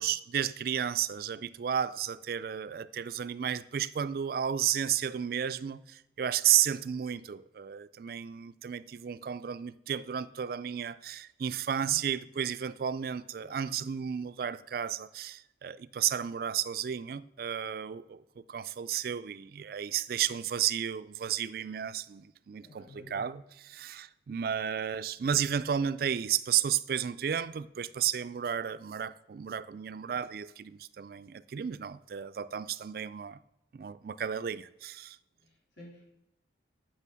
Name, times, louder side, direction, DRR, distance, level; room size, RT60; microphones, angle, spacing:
voice 1, 0.0-33.4 33.7-35.2, right 9 dB, 50° right, 0.3 m, -33 dB
voice 2, 22.6-23.3 35.4-36.0, left 2 dB, 75° left, 4.0 m, -51 dB
8.4 x 5.8 x 6.8 m
head